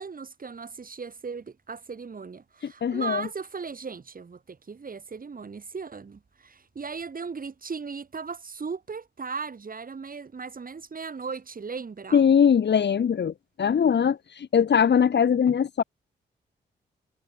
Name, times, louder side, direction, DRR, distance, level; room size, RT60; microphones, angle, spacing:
voice 1, 0.0-12.2, right 5 dB, 45° right, 7.0 m, -37 dB
voice 2, 2.8-3.2 12.1-13.3 13.6-15.8, left 7 dB, 65° left, 2.7 m, -21 dB
cardioid pair, 65°, 19 cm